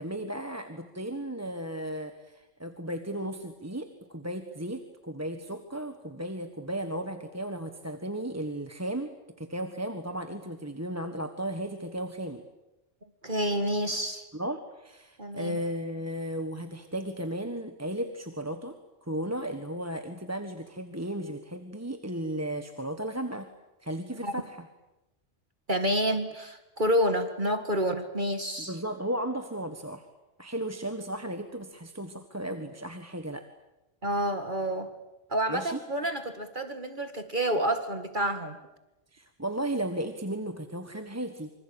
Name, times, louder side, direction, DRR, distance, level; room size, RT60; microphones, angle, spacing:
voice 1, 0.0-9.1 9.4-12.4 14.3-18.7 19.0-23.5 23.8-24.7 28.6-30.1 30.4-33.4 35.5-35.8 39.1-41.5, right 1 dB, 15° right, 6 dB, 1.5 m, -35 dB
voice 2, 13.2-14.2 15.2-15.6 24.2-24.3 25.7-28.8 34.0-34.9 35.3-38.6, equal, 40° right, 8 dB, 2.0 m, -29 dB
26.5 x 25.5 x 8.8 m, 0.98 s
omnidirectional pair, 1.3 m